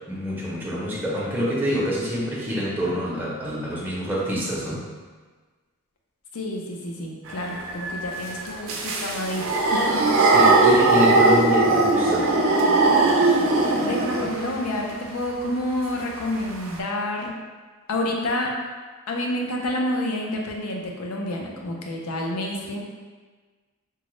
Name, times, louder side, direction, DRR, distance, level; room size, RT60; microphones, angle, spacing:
voice 1, 0.1-4.8 10.2-12.4, equal, 10° right, -7 dB, 0.6 m, -26 dB
voice 2, 6.3-10.2 13.8-17.4 17.9-18.5 19.1-22.8, left 1 dB, 80° left, 0 dB, 0.5 m, -29 dB
sound 1, 7.3-14.6 16.2-16.3 16.5-16.8, right 3 dB, 60° right, 0.4 m, -20 dB
3.5 x 2.1 x 3.0 m, 1.4 s
head